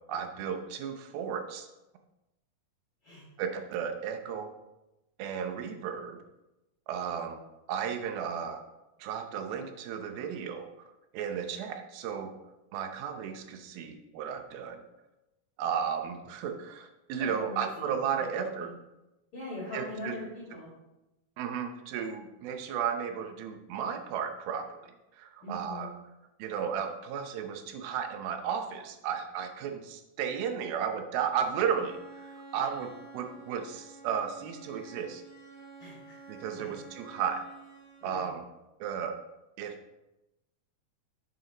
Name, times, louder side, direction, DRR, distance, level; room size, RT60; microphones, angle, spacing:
voice 1, 0.1-1.7 3.4-4.5 5.2-6.2 6.9-7.4 7.7-8.6 9.0-12.3 12.7-14.8 15.6-18.7 19.7-20.2 21.4-25.9 26.4-35.2 36.3-37.4 38.0-38.4 38.8-39.2 39.6-39.8, right 7 dB, 90° right, 6 dB, 2.7 m, -34 dB
voice 2, 17.2-18.3 18.6-18.7 19.3-20.7 25.4-25.9 32.6-32.8 35.8-36.2 36.5-36.7 38.0-38.3, left 1 dB, 45° left, -5 dB, 2.5 m, -42 dB
Bowed string instrument, 31.7-38.4, right 3 dB, 35° right, 3.0 m, -50 dB
9.6 x 7.7 x 3.0 m, 0.98 s
omnidirectional pair, 4.2 m